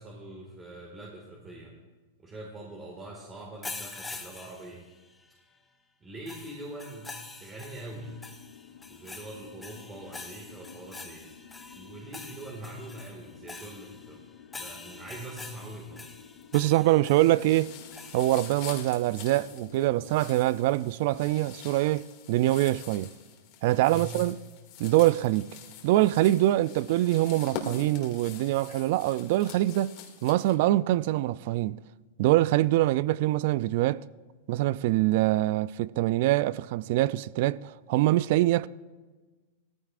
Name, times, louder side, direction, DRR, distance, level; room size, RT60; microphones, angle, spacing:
voice 1, 0.0-1.8 2.2-4.8 6.0-7.1 7.4-8.3 8.9-11.3 11.8-14.2 14.5-16.1 23.9-24.1, right 2 dB, 20° right, 1.9 m, -43 dB
sound 1, 3.6-5.3 6.3-18.5, left 3 dB, 10° left, 1.0 m, -45 dB
sound 2, 8.1-20.6, left 8 dB, 90° left, 0.9 m, -52 dB
sound 3, 16.2-16.7 17.1-30.5, left 7 dB, 50° left, 2.2 m, -45 dB
voice 2, 16.5-17.7 18.1-23.1 23.6-24.4 24.8-25.5 25.8-31.8 32.2-34.0 34.5-38.7, right 16 dB, 55° right, 0.3 m, -24 dB
18.0 x 14.5 x 2.5 m
hypercardioid pair, 140°, 0 cm